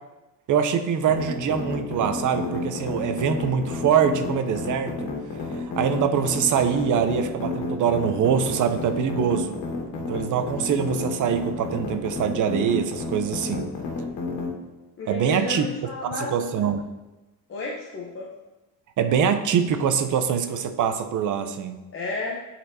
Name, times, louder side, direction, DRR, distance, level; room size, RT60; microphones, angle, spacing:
voice 1, 0.5-5.1 5.6-9.6 10.0-13.7 15.1-15.7 16.1-16.8 19.0-21.8, right 7 dB, 45° right, 8 dB, 0.6 m, -24 dB
sound 1, 1.1-14.5, left 4 dB, 85° left, 1.7 m, -31 dB
voice 2, 15.0-16.7 17.5-18.3 21.9-22.4, left 3 dB, 30° left, -4 dB, 0.8 m, -32 dB
10.5 x 4.3 x 2.7 m, 1.1 s
cardioid pair, 130°, 41 cm